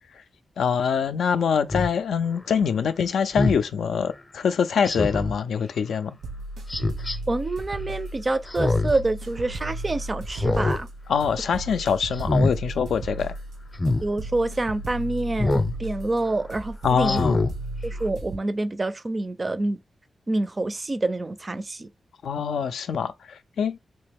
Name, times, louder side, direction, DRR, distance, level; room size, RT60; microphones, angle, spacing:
voice 1, 0.6-6.2 11.1-13.3 16.8-17.4 22.2-23.8, left 6 dB, 90° left, 0.4 m, -24 dB
Speech synthesizer, 1.7-1.9 3.3-3.6 4.8-5.3 6.7-7.2 8.5-9.0 9.4-9.5 10.3-10.8 11.2-11.5 12.1-12.5 13.7-14.0 15.4-15.7 16.2-16.3 17.0-17.5 18.0-18.1, left 2 dB, 25° left, 0.6 m, -24 dB
sound 1, 6.2-18.4, right 2 dB, 90° right, 0.9 m, -35 dB
voice 2, 7.3-10.9 14.0-17.2 17.8-19.8 20.3-21.9, right 2 dB, 30° right, 0.4 m, -27 dB
3.2 x 2.9 x 3.4 m
wide cardioid pair, 100°, 0 cm